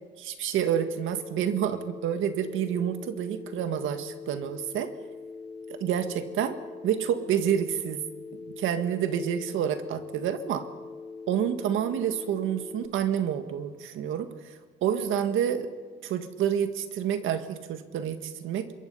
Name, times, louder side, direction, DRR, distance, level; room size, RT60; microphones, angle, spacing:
voice 1, 0.2-4.9 5.7-6.6 6.8-8.0 8.4-10.7 11.3-14.5 14.8-15.7 16.0-18.7, right 9 dB, 85° right, 9 dB, 1.8 m, -28 dB
Telephone, 0.7-12.9, left 4 dB, 25° left, 1.3 m, -42 dB
26.5 x 22.0 x 5.6 m, 1.5 s
cardioid pair, 90°, 20 cm